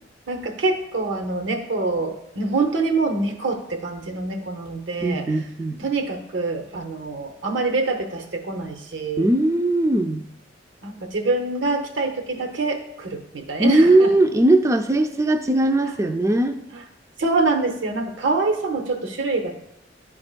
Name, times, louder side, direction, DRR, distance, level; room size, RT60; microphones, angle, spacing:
voice 1, 0.3-5.4 5.8-9.3 10.8-14.1 15.8-15.9 16.7-16.8 17.2-19.6, right 3 dB, 75° right, 5 dB, 0.7 m, -25 dB
voice 2, 5.0-5.8 9.2-10.3 13.6-16.6, right 1 dB, 15° right, 7 dB, 0.3 m, -19 dB
10.5 x 4.3 x 2.2 m, 0.81 s
head